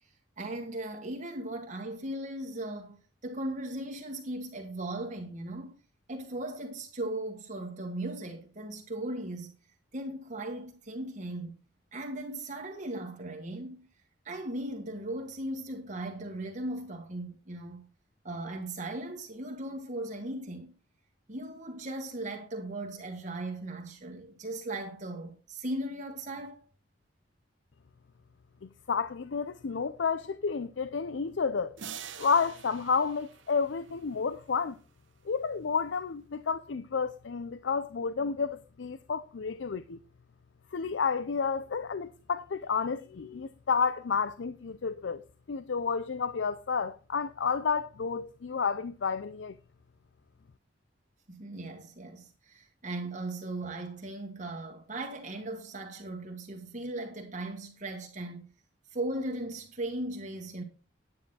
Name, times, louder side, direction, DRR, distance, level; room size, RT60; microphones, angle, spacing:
voice 1, 0.4-5.7 6.1-9.5 9.9-11.6 11.9-13.9 14.2-17.9 18.2-20.7 21.3-26.6 51.3-58.5 58.9-60.6, right 1 dB, 40° right, 1.5 m, -37 dB
voice 2, 28.9-31.8 32.2-34.8 35.3-40.0 40.7-45.2 45.5-49.6, left 5 dB, 70° left, 0.5 m, -31 dB
sound 1, 31.8-34.3, right 8 dB, 75° right, 0.9 m, -46 dB
9.9 x 9.4 x 4.0 m
head